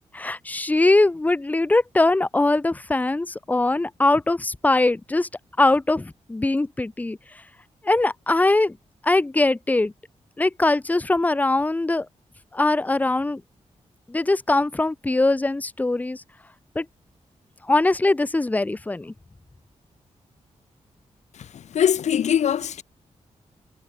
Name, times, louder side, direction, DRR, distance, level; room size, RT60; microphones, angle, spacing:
voice 1, 0.1-5.3 5.6-7.2 7.8-8.7 9.0-9.9 10.4-12.0 12.5-13.4 14.1-16.2 16.7-16.8 17.7-19.1, left 2 dB, 15° left, 1.6 m, -21 dB
voice 2, 21.3-22.8, left 9 dB, 75° left, 1.3 m, -22 dB
wide cardioid pair, 175°, 12 cm